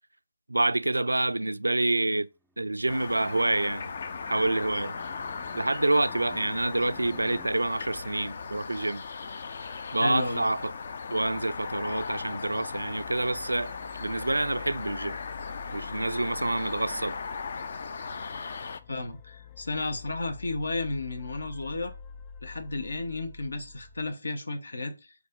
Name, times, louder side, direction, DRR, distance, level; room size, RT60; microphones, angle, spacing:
voice 1, 0.5-2.3 2.6-3.8 4.3-4.9 5.5-9.0 9.9-10.7 11.1-13.7 14.0-15.2 15.7-17.1, right 2 dB, 90° right, 0.4 m, -27 dB
Fixed-wing aircraft airplane, 2.7-7.5, left 1 dB, 5° right, 0.4 m, -53 dB
sound 1, 2.9-18.8, left 5 dB, 50° left, 0.6 m, -38 dB
voice 2, 10.0-10.5 18.9-21.9 22.4-25.1, left 2 dB, 70° left, 1.1 m, -33 dB
sound 2, 12.4-24.1, left 6 dB, 20° left, 0.8 m, -47 dB
5.2 x 4.1 x 5.2 m
figure-of-eight pair, 150°, 0 cm